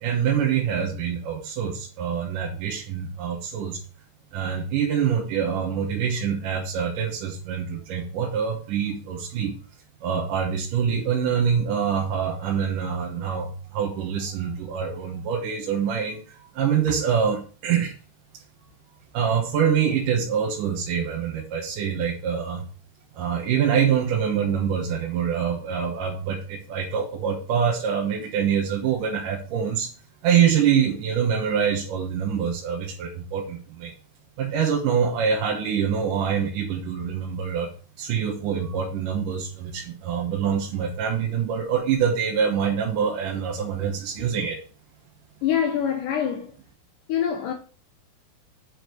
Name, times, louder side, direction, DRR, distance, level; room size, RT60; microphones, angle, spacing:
voice 1, 0.0-3.8 4.3-9.5 10.0-17.9 19.1-22.6 23.2-29.9 30.2-33.9 34.4-37.7 38.0-44.6, right 7 dB, 70° right, 2.7 m, -25 dB
voice 2, 45.4-46.5 47.1-47.5, left 9 dB, 75° left, 2.3 m, -24 dB
8.7 x 4.9 x 4.7 m
omnidirectional pair, 4.1 m